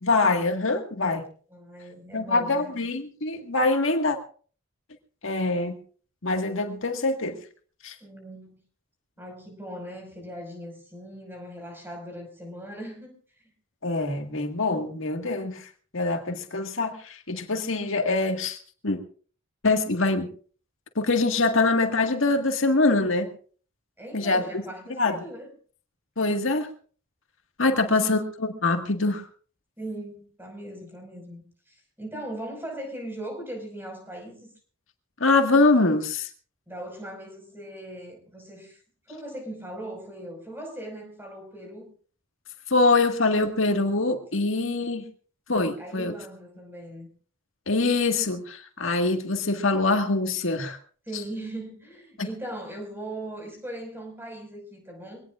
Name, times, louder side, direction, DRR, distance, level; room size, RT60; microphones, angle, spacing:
voice 1, 0.0-1.2 2.1-4.2 5.2-5.8 6.2-7.4 7.8-8.0 13.8-15.7 15.9-18.6 18.8-19.0 19.6-20.3 21.0-23.3 24.1-24.4 25.0-25.2 26.2-26.7 27.6-29.2 35.2-36.3 42.7-45.0 45.5-46.1 47.7-50.8 52.2-52.3, left 3 dB, 75° left, 1.8 m, -24 dB
voice 2, 1.5-2.7 8.0-8.6 9.2-13.5 24.0-25.5 27.7-28.2 29.8-34.5 36.7-38.8 39.1-41.9 45.8-47.1 51.1-55.2, right 1 dB, 10° right, 5.2 m, -39 dB
23.5 x 18.5 x 2.5 m
head